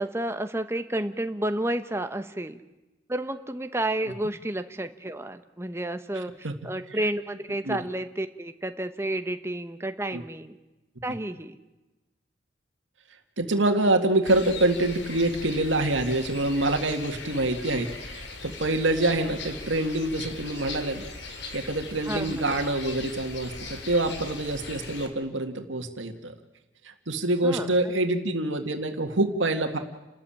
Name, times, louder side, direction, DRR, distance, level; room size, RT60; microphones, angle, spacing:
voice 1, 0.0-2.6 3.1-10.6 11.0-11.6 22.1-22.4 27.4-27.9, right 1 dB, 15° right, 9 dB, 1.0 m, -31 dB
voice 2, 13.4-21.1 21.5-26.3 26.8-29.8, right 2 dB, 90° right, 6 dB, 2.0 m, -26 dB
sound 1, 14.2-25.1, left 3 dB, 65° left, 3.1 m, -40 dB
30.0 x 13.5 x 8.7 m, 1.1 s
head